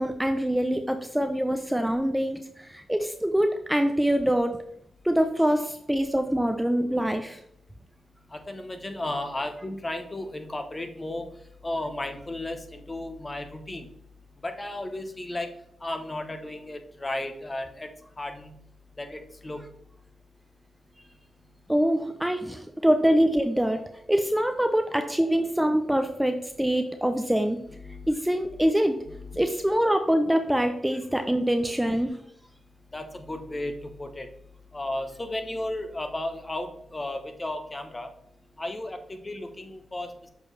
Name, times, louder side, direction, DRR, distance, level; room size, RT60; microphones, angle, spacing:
voice 1, 0.0-4.6 5.0-7.4 21.7-23.8 24.1-27.6 28.1-29.0 29.4-32.2, equal, 5° right, 6 dB, 0.6 m, -24 dB
voice 2, 8.3-11.3 11.6-13.9 14.4-15.5 15.8-17.9 18.2-18.5 19.0-19.6 27.7-28.1 29.1-29.4 32.9-34.3 34.7-38.1 38.6-40.1, left 1 dB, 30° left, 7 dB, 1.0 m, -34 dB
6.9 x 4.4 x 3.3 m, 0.71 s
cardioid pair, 55°, 0 cm